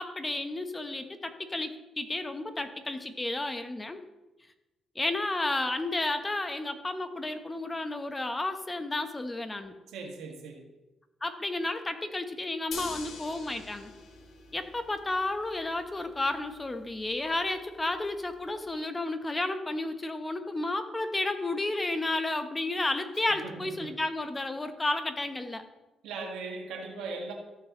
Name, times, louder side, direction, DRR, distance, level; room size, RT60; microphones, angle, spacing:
voice 1, 0.0-4.0 4.9-9.7 11.2-13.9 14.5-25.6, left 2 dB, 20° left, 8 dB, 0.9 m, -32 dB
voice 2, 9.9-10.7 23.3-23.9 26.0-27.3, right 4 dB, 90° right, 2 dB, 1.6 m, -39 dB
sound 1, 12.7-18.7, left 5 dB, 65° left, 1.3 m, -46 dB
14.0 x 6.4 x 3.0 m, 1.0 s
cardioid pair, 90°, 0 cm